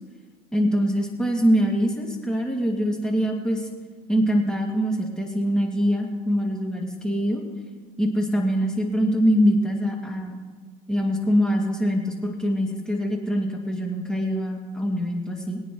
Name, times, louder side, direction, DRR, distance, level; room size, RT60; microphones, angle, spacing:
voice 1, 0.5-3.7 4.1-7.4 8.0-10.4 10.9-15.6, equal, 5° left, -1 dB, 2.4 m, -23 dB
22.5 x 9.1 x 3.2 m, 1.4 s
supercardioid pair, 100°, 19 cm